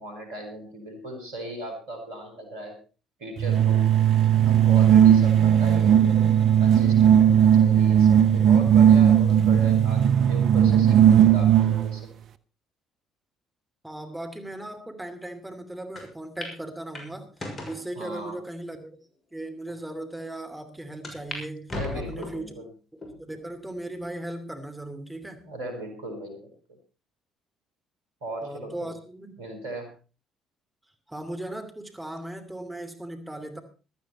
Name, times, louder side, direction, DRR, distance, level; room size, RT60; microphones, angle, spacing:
voice 1, 0.0-2.8 3.2-3.9 4.4-6.3 6.6-12.1 17.9-18.4 21.7-22.7 25.4-26.5 28.2-28.9 29.4-29.9, right 1 dB, 75° right, 4 dB, 4.4 m, -37 dB
sound 1, 3.4-12.0, right 9 dB, 55° right, 0.9 m, -17 dB
voice 2, 13.8-17.3 17.6-19.0 19.3-22.5 22.9-25.5 28.4-29.4 31.1-33.6, right 1 dB, 10° right, 5 dB, 2.7 m, -37 dB
sound 2, 16.0-16.1 16.4-16.6 16.9-17.8 18.5-18.6 19.3-19.4 19.7-19.8 21.0-21.4 21.7-22.5 23.0-23.5 24.0-24.1 25.2-25.7, left 2 dB, 35° left, 6.4 m, -37 dB
15.5 x 13.0 x 4.3 m, 0.34 s
hypercardioid pair, 50°, 0 cm